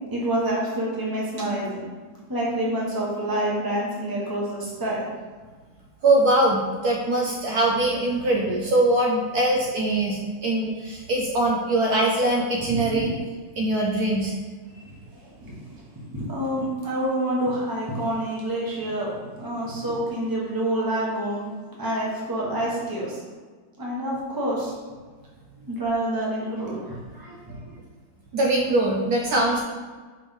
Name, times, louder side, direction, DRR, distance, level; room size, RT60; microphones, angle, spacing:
voice 1, 0.1-1.8 2.3-5.0 12.7-13.1 15.2-15.3 16.1-21.5 21.8-23.2 23.8-24.8 25.7-27.7, right 1 dB, 15° right, -5 dB, 1.1 m, -27 dB
voice 2, 6.0-13.1 13.6-14.3 28.3-29.6, right 1 dB, 65° right, -1 dB, 1.1 m, -22 dB
5.1 x 3.5 x 5.2 m, 1.4 s
omnidirectional pair, 1.9 m